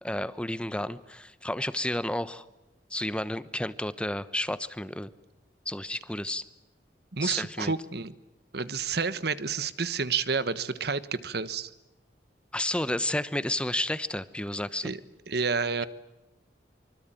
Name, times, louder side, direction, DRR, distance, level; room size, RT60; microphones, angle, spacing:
voice 1, 0.0-2.4 2.9-5.1 5.7-6.4 7.2-7.7 12.5-14.9, left 1 dB, 5° left, 14 dB, 1.0 m, -31 dB
voice 2, 7.1-8.1 8.5-11.7 14.8-15.0 15.3-15.9, right 5 dB, 65° right, 15 dB, 1.3 m, -29 dB
25.0 x 25.0 x 9.1 m, 0.99 s
head